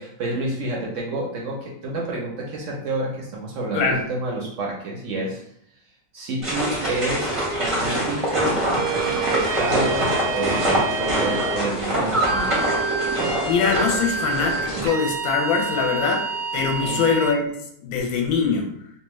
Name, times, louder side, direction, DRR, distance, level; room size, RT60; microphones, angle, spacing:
voice 1, 0.0-5.4 6.1-8.6 9.3-12.9 16.8-17.1, right 2 dB, 65° right, -2 dB, 0.8 m, -29 dB
voice 2, 3.7-4.0 13.4-16.3 16.5-17.5 17.8-18.7, left 5 dB, 70° left, 2 dB, 1.0 m, -22 dB
sound 1, 6.4-14.9, right 1 dB, 30° right, 0.6 m, -24 dB
sound 2, 7.0-16.9, right 5 dB, 45° left, 0.9 m, -38 dB
sound 3, 8.8-11.6 12.2-17.4, right 3 dB, 85° right, 1.2 m, -28 dB
2.8 x 2.4 x 3.0 m, 0.71 s
omnidirectional pair, 1.8 m